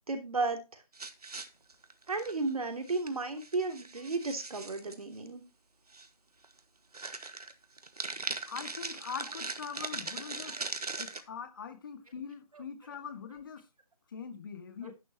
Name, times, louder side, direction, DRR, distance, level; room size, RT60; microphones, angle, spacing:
voice 1, 0.1-0.8 2.1-5.4 10.5-10.6 10.9-11.0 12.5-12.6 14.8-14.9, right 3 dB, 70° right, 3.1 m, -34 dB
sound 1, 0.9-2.5 2.9-3.1 3.4-5.0 5.9-6.1 6.4-6.6 6.9-11.2, right 3 dB, 90° right, 1.9 m, -40 dB
voice 2, 8.5-10.6 11.0-13.6 14.1-14.9, left 6 dB, 35° left, 2.1 m, -42 dB
11.0 x 10.5 x 3.0 m
figure-of-eight pair, 165°, 19 cm